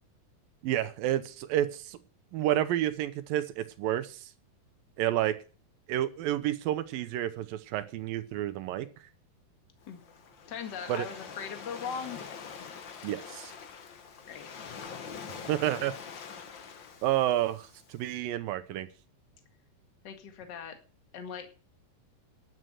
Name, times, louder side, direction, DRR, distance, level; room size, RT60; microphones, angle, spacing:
voice 1, 0.6-2.0 2.3-4.3 5.0-5.4 5.9-8.9 10.9-11.1 13.0-13.5 15.4-15.9 17.0-18.9, right 13 dB, 80° right, 10 dB, 2.6 m, -30 dB
Waves surf, 9.8-18.0, left 6 dB, 70° left, 1.1 m, -45 dB
voice 2, 10.5-12.7 13.0-13.1 14.3-14.5 20.0-20.8 21.1-21.5, left 7 dB, 40° left, 5 dB, 1.9 m, -40 dB
11.0 x 7.6 x 8.0 m, 0.37 s
omnidirectional pair, 4.1 m